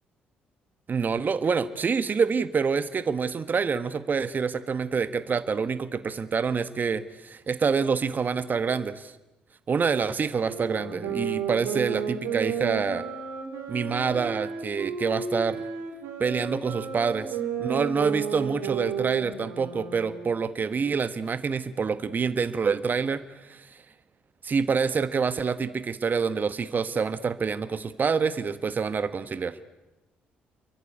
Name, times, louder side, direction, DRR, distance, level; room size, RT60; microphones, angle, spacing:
voice 1, 0.9-9.1 9.7-13.1 13.7-15.6 16.2-23.8 24.4-29.6, right 5 dB, 40° right, 12 dB, 1.4 m, -27 dB
sound 1, 10.4-20.5, right 6 dB, 70° right, 4.8 m, -33 dB
29.0 x 23.5 x 8.3 m, 1.0 s
hypercardioid pair, 50°, 5 cm